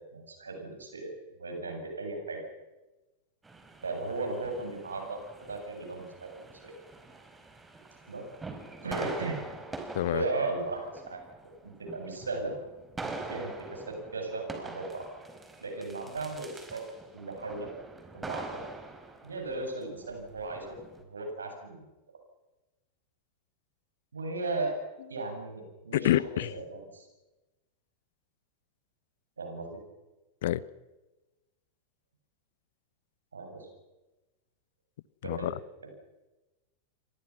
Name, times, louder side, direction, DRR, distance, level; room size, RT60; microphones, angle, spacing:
voice 1, 0.1-1.1 1.4-2.5 3.8-5.2 5.5-6.7 8.1-8.3 8.8-9.4 10.1-11.2 11.6-12.5 13.0-15.0 15.6-16.8 17.1-17.7 18.1-18.6 19.2-20.8 21.1-21.8 24.1-24.7 25.1-26.1 26.5-27.1 29.4-29.8 33.3-33.7 35.2-35.5, right 3 dB, 75° right, 4 dB, 7.8 m, -36 dB
sound 1, 3.4-21.0, right 3 dB, 10° right, 4.6 m, -44 dB
voice 2, 9.9-10.2 25.9-26.5 30.4-30.6 35.3-35.5, left 13 dB, 55° left, 20 dB, 0.9 m, -27 dB
29.5 x 25.0 x 6.1 m, 1.1 s
figure-of-eight pair, 90°, 0 cm